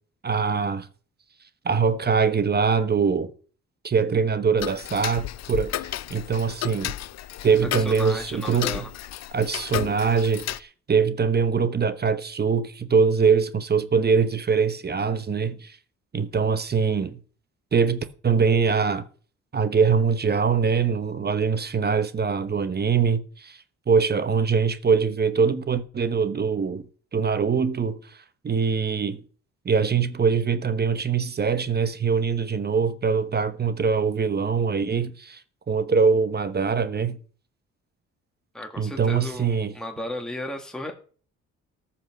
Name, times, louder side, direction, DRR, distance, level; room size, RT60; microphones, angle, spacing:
voice 1, 0.2-0.9 1.6-3.3 3.8-6.9 7.4-8.8 9.3-15.8 16.1-17.2 17.7-19.1 19.5-23.6 23.9-26.8 27.1-28.0 28.4-29.2 29.6-35.4 35.7-37.2 38.8-39.7, right 5 dB, 35° right, 1.0 m, -23 dB
Tick-tock, 4.6-10.6, left 13 dB, 60° left, 0.6 m, -33 dB
voice 2, 7.8-8.9 38.5-40.9, left 1 dB, ahead, 1.8 m, -35 dB
13.5 x 5.9 x 6.4 m
cardioid pair, 90°, 30 cm